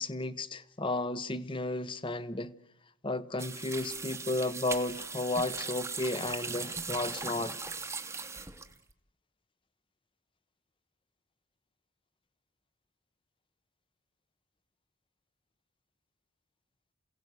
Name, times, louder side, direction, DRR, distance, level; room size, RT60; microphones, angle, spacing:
voice 1, 0.0-2.5 3.0-7.6, left 2 dB, 25° left, 0.8 m, -33 dB
sound 1, 3.4-8.9, right 4 dB, 10° right, 1.0 m, -39 dB
28.0 x 17.0 x 8.1 m
head